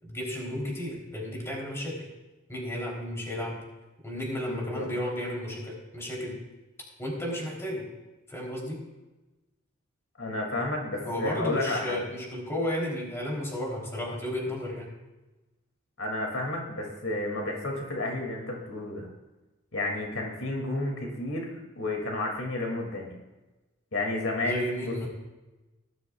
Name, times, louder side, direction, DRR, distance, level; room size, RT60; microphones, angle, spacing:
voice 1, 0.0-2.1 2.5-3.6 4.0-6.4 7.0-7.9 8.3-8.8 11.0-14.9 24.4-25.1, left 1 dB, 15° left, -3 dB, 3.2 m, -33 dB
voice 2, 4.5-4.9 10.2-12.0 16.0-19.1 19.7-23.1 23.9-25.1, left 2 dB, 75° left, 1 dB, 2.3 m, -31 dB
19.0 x 12.0 x 2.3 m, 1.1 s
head